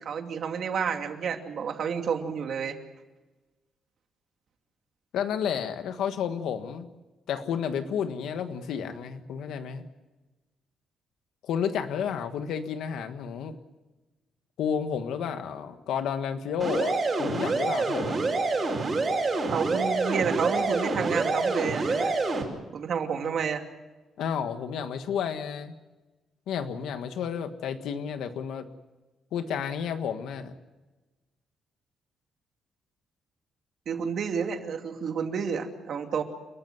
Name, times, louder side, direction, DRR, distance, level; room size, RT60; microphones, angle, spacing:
voice 1, 0.0-2.8 19.5-22.1 22.7-23.6 33.9-36.2, right 6 dB, 50° right, 4 dB, 2.6 m, -30 dB
voice 2, 5.1-6.9 7.3-9.8 11.4-13.6 14.6-18.2 24.2-25.8 26.5-28.7 29.3-30.5, left 7 dB, 90° left, 8 dB, 1.5 m, -31 dB
sound 1, 16.6-22.4, right 3 dB, 25° right, 5.2 m, -27 dB
30.0 x 13.5 x 9.3 m, 1.2 s
cardioid pair, 170°, 0 cm